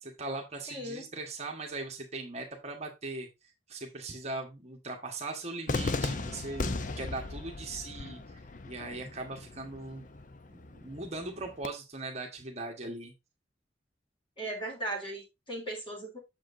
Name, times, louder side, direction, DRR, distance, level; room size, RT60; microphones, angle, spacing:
voice 1, 0.0-3.3 3.7-10.0 10.5-13.1, right 2 dB, 35° right, 2 dB, 1.4 m, -40 dB
voice 2, 0.7-1.1 14.4-16.2, right 1 dB, 25° left, -1 dB, 3.3 m, -37 dB
Cheering / Fireworks, 5.7-11.7, left 3 dB, 45° left, 0.6 m, -37 dB
7.5 x 7.0 x 2.6 m, 0.23 s
head